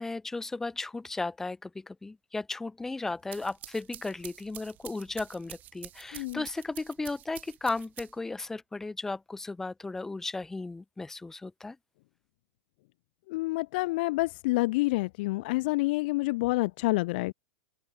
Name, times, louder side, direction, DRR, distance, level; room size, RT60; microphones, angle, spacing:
voice 1, 0.0-11.8, left 3 dB, 5° left, 3.8 m, -35 dB
sound 1, 3.1-8.4, right 13 dB, 20° right, 2.2 m, -48 dB
voice 2, 6.1-6.4 13.3-17.3, left 21 dB, 40° left, 1.9 m, -28 dB
open air
supercardioid pair, 175°, 8 cm